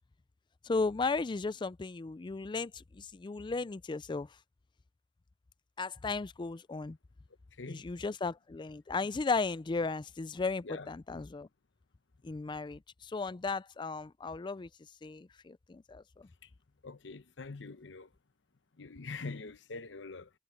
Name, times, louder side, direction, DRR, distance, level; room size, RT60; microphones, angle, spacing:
voice 1, 0.6-4.3 5.8-7.0 7.7-11.5 12.2-14.7 15.0-16.3, left 4 dB, 25° left, 0.4 m, -35 dB
voice 2, 7.6-7.9 10.6-10.9 16.4-16.5 16.8-18.1 18.8-20.3, left 3 dB, 85° left, 0.9 m, -44 dB
head